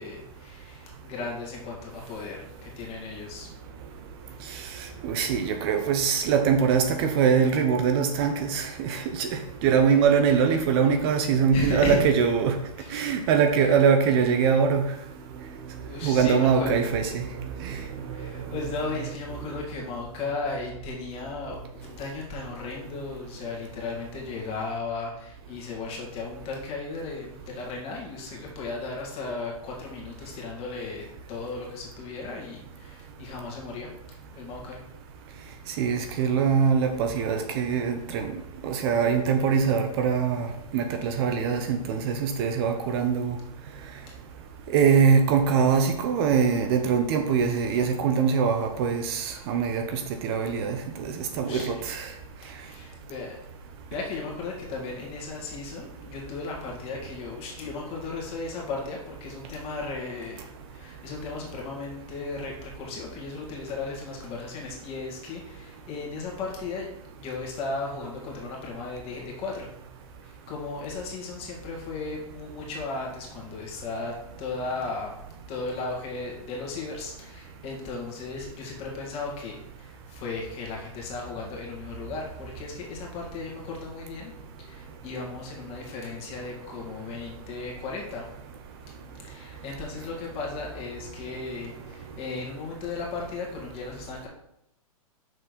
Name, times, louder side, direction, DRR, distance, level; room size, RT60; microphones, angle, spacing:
voice 1, 0.0-3.5 11.5-12.0 12.8-13.1 15.8-17.0 18.1-33.9 34.3-34.8 44.1-44.2 51.4-51.9 52.4-53.4 53.9-60.4 60.7-66.9 67.2-69.7 70.2-75.1 75.5-84.3 84.6-88.2 89.2-94.3, left 3 dB, 30° left, -1 dB, 2.1 m, -36 dB
voice 2, 5.0-12.5 12.9-14.9 16.0-17.3 17.6-17.8 18.5-18.6 35.8-38.3 38.6-40.5 40.7-43.4 44.7-52.1, right 6 dB, 40° right, 6 dB, 0.8 m, -23 dB
6.3 x 4.4 x 5.1 m, 0.79 s
hypercardioid pair, 135°, 19 cm